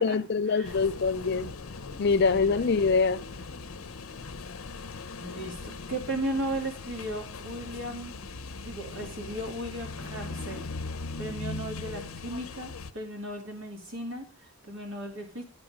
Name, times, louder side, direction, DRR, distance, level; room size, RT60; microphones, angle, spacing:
voice 1, 0.0-1.5 2.0-3.2, left 4 dB, 50° left, 0.4 m, -24 dB
sound 1, 0.6-12.9, left 3 dB, 85° left, 0.8 m, -40 dB
voice 2, 2.0-2.9 5.2-5.6 5.9-8.1 8.6-10.7 11.2-15.4, right 1 dB, 65° right, 2.7 m, -36 dB
9.8 x 8.6 x 5.0 m
head